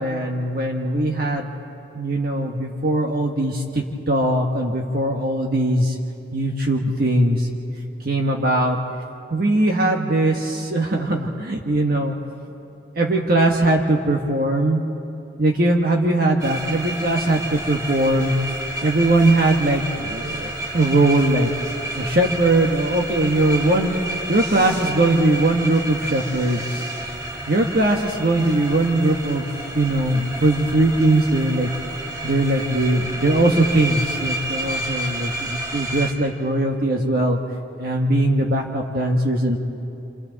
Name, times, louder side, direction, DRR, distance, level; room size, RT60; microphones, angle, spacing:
voice 1, 0.0-1.5 1.9-6.0 6.3-7.6 8.0-8.8 9.3-12.1 13.0-14.8 15.4-18.3 18.8-21.5 21.9-23.9 24.3-26.9 27.5-29.5 29.7-31.7 32.2-37.4 37.8-39.6, right 1 dB, 55° right, 1 dB, 1.5 m, -20 dB
sound 1, 16.4-36.1, right 1 dB, 20° right, 2.1 m, -30 dB
28.0 x 27.5 x 4.1 m, 2.7 s
head